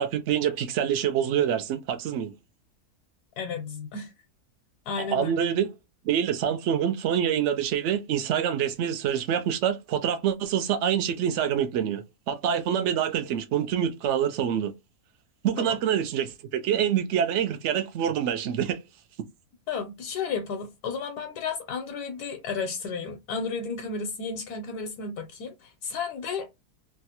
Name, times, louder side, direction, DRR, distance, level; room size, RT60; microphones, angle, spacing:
voice 1, 0.0-2.3 5.0-5.7 6.0-14.7 15.4-18.8, right 9 dB, 65° right, 0.7 m, -26 dB
voice 2, 3.4-4.1 4.9-5.3 15.6-15.8 19.7-26.5, left 5 dB, 85° left, 1.1 m, -33 dB
3.0 x 2.3 x 2.8 m
omnidirectional pair, 1.7 m